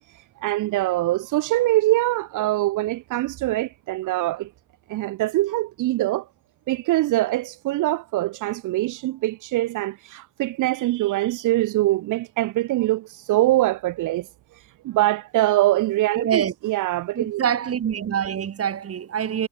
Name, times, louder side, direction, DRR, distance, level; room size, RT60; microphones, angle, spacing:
voice 1, 0.4-4.5 4.9-6.3 6.7-14.3 14.8-17.4, right 16 dB, 85° right, 1.1 m, -23 dB
voice 2, 16.2-16.5 17.1-19.5, right 8 dB, 50° right, 2.5 m, -25 dB
cardioid pair, 90°, 30 cm